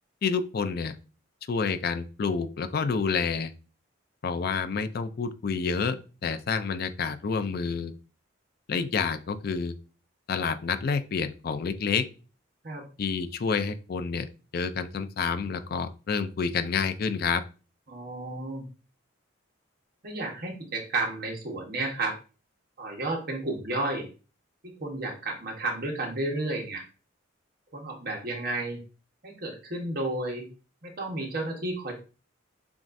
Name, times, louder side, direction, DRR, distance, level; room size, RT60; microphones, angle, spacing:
voice 1, 0.2-1.0 1.5-3.5 4.2-7.9 8.7-9.7 10.3-12.1 13.0-14.3 14.5-17.4, left 5 dB, 50° left, 11 dB, 0.4 m, -28 dB
voice 2, 17.9-18.7 20.0-22.2 22.8-24.1 24.6-26.8 27.7-28.8 29.2-30.5 30.8-31.9, right 2 dB, 50° right, 1 dB, 1.1 m, -32 dB
7.1 x 2.4 x 2.6 m, 0.34 s
head